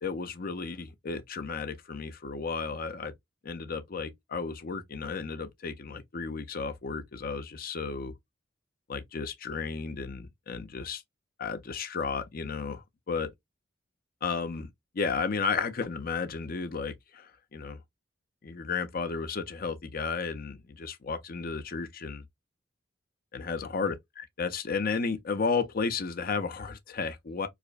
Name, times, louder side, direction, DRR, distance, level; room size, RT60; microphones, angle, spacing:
voice 1, 0.0-3.1 3.4-8.1 8.9-11.0 11.4-13.3 14.2-14.7 14.9-17.8 18.4-22.2 23.3-27.5, left 5 dB, 50° left, 0.6 m, -33 dB
4.8 x 2.1 x 2.4 m
head